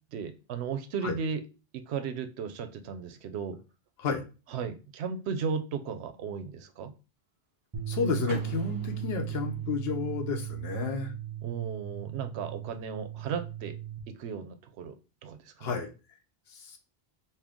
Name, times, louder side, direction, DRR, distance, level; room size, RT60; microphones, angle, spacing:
voice 1, 0.1-1.4 1.7-3.6 4.5-6.9 11.4-13.7 14.1-15.7, right 6 dB, 85° right, 9 dB, 0.8 m, -35 dB
sound 1, 7.7-14.0, right 12 dB, 30° right, 0.6 m, -37 dB
voice 2, 7.9-11.1 15.6-15.9 16.5-16.8, left 5 dB, 70° left, 5 dB, 1.0 m, -31 dB
Car / Door, 8.2-10.2, right 2 dB, 65° right, 1.7 m, -46 dB
4.3 x 2.1 x 3.5 m, 0.31 s
omnidirectional pair, 1.1 m